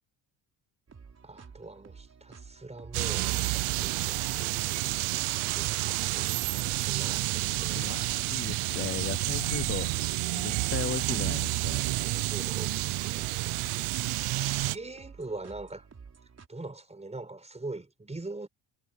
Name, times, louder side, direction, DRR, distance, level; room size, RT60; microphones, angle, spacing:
sound 1, 0.9-16.5, right 5 dB, 30° right, 4.5 m, -51 dB
voice 1, 1.2-8.0 11.8-15.9 16.5-18.5, right 2 dB, 15° right, 5.5 m, -43 dB
sound 2, 2.9-14.8, right 19 dB, 80° right, 0.9 m, -30 dB
voice 2, 7.7-11.9, left 8 dB, 25° left, 0.6 m, -37 dB
cardioid pair, 120°, 49 cm